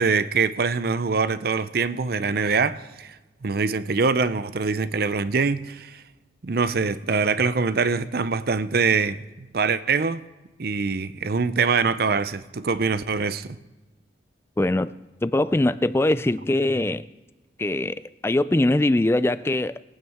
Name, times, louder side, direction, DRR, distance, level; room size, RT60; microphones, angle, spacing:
voice 1, 0.0-3.2 3.4-6.0 6.4-10.2 10.6-13.5, right 4 dB, 55° right, 0.6 m, -24 dB
voice 2, 14.6-15.0 15.2-17.1 17.6-18.0 18.2-19.8, left 1 dB, 15° left, 0.3 m, -22 dB
22.5 x 9.0 x 3.6 m
head